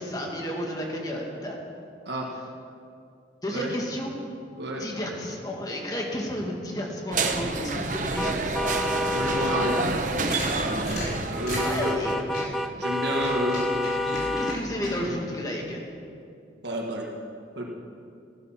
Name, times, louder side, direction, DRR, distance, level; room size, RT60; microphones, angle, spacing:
voice 1, 0.0-1.6 3.4-4.1 4.8-8.5 11.6-12.3 14.4-15.8, equal, 20° left, 0 dB, 2.0 m, -32 dB
sound 1, 7.1-12.1, right 3 dB, 45° right, 1.0 m, -28 dB
sound 2, 8.2-9.9 11.6-14.6, left 1 dB, ahead, 0.4 m, -28 dB
voice 2, 9.1-10.0 11.3-12.0 12.8-14.4 16.6-17.1 17.5-17.7, right 1 dB, 75° right, -1 dB, 1.7 m, -30 dB
sound 3, 10.3-12.6 13.1-14.9, left 1 dB, 65° left, 4.8 m, -35 dB
15.0 x 13.0 x 6.0 m, 2.4 s
head